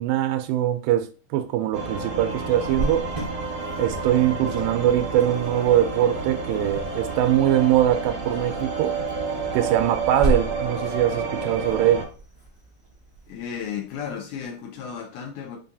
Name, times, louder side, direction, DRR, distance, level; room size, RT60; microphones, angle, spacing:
voice 1, 0.0-3.1 3.8-8.9 9.5-12.0, right 12 dB, 90° right, 2.3 m, -22 dB
sound 1, 1.7-12.0, right 3 dB, 55° right, 2.2 m, -30 dB
Cricket, 2.6-14.1, right 1 dB, 40° right, 0.7 m, -35 dB
voice 2, 13.3-15.6, left 7 dB, 80° left, 1.9 m, -34 dB
5.3 x 2.3 x 2.6 m
omnidirectional pair, 3.9 m